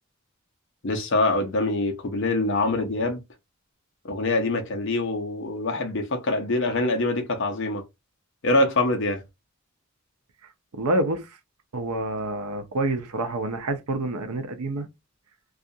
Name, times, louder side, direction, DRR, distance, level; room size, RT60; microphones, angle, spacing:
voice 1, 0.8-3.2 4.0-7.8 8.4-9.2, left 2 dB, 55° left, 0.6 m, -24 dB
voice 2, 10.8-11.4 11.7-14.9, right 2 dB, 85° right, 0.6 m, -27 dB
2.4 x 2.4 x 2.7 m
head